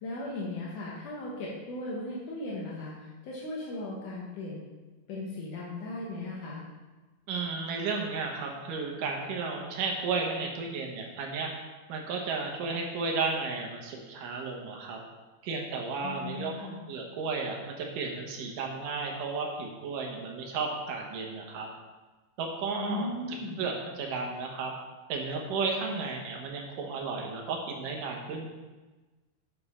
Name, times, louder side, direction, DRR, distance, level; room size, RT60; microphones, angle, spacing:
voice 1, 0.0-2.9 3.2-4.6 5.1-6.6 16.0-16.8 22.8-23.6 25.9-26.0, left 2 dB, 75° left, -5 dB, 2.6 m, -37 dB
voice 2, 7.3-11.5 11.9-15.0 15.4-21.7 22.4-24.7 25.1-28.5, right 4 dB, 85° right, 1 dB, 2.7 m, -33 dB
7.5 x 7.0 x 4.2 m, 1.2 s
omnidirectional pair, 3.7 m